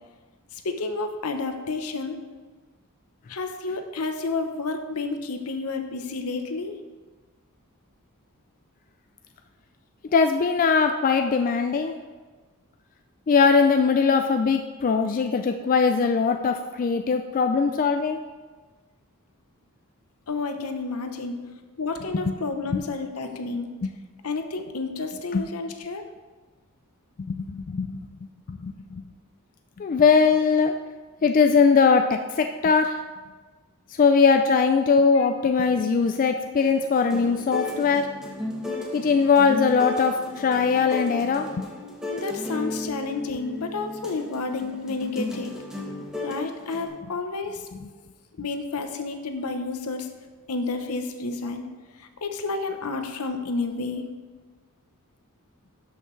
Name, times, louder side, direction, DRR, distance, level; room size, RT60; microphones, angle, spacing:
voice 1, 0.5-2.2 3.3-6.8 20.3-21.4 21.8-23.7 24.2-26.0 35.2-35.3 42.1-45.6 46.2-47.6 48.4-50.1 50.5-54.1, left 3 dB, 75° left, 6 dB, 0.8 m, -30 dB
voice 2, 10.1-12.0 13.3-18.2 22.3-22.4 22.7-22.8 23.8-23.9 25.3-25.4 27.2-29.0 29.8-30.8 31.2-33.0 34.0-38.1 38.9-41.6, left 5 dB, 40° left, 6 dB, 0.3 m, -21 dB
sound 1, 36.6-46.9, left 1 dB, 5° right, 1.2 m, -34 dB
12.0 x 5.7 x 3.2 m, 1.3 s
head